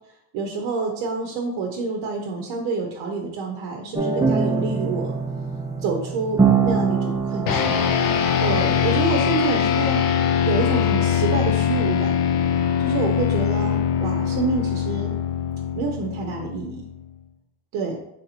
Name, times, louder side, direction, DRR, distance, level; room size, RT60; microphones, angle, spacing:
voice 1, 0.3-5.2 5.8-7.8 8.4-10.0 10.4-12.1 12.8-15.2 15.8-16.9 17.7-18.0, right 4 dB, 70° right, 2 dB, 0.8 m, -27 dB
sound 1, 4.0-9.9, right 5 dB, 10° right, 0.4 m, -24 dB
sound 2, 7.5-17.1, left 8 dB, 45° left, 0.5 m, -22 dB
3.3 x 2.7 x 4.1 m, 0.80 s
supercardioid pair, 95°, 48 cm